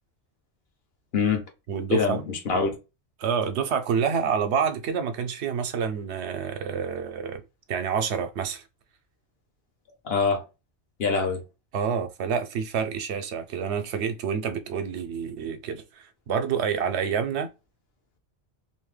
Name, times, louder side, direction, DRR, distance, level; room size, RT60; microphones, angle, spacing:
voice 1, 1.1-1.4 1.9-2.7 10.0-10.4 11.0-11.4, left 5 dB, 60° left, 1.0 m, -24 dB
voice 2, 1.7-2.2 3.2-7.4 7.7-8.6 11.7-17.5, right 7 dB, 75° right, 0.9 m, -28 dB
2.7 x 2.1 x 3.1 m
omnidirectional pair, 1.2 m